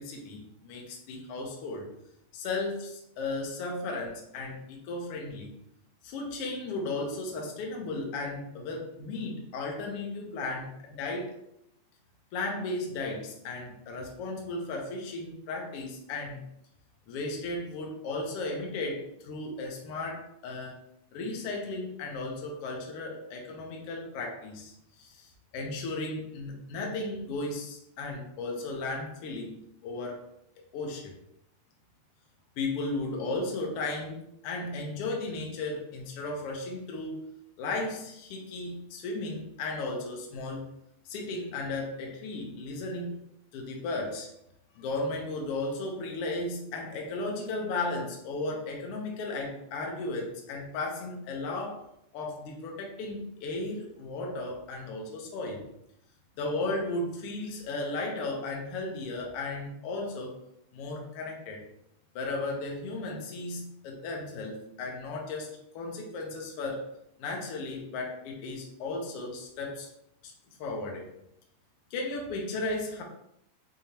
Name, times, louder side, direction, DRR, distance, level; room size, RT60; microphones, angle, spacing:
voice 1, 0.0-1.9 2.3-5.5 6.0-11.3 12.3-16.4 17.1-20.8 21.1-24.7 25.0-30.2 30.7-31.1 32.6-37.2 37.6-40.7 41.0-43.2 43.5-44.3 44.7-51.8 52.1-55.6 56.4-60.4 60.7-61.6 62.1-66.9 67.2-69.9 70.2-70.3 70.6-71.1 71.9-73.0, left 2 dB, 75° left, 0 dB, 1.3 m, -35 dB
5.0 x 2.8 x 2.8 m, 0.78 s
omnidirectional pair, 3.3 m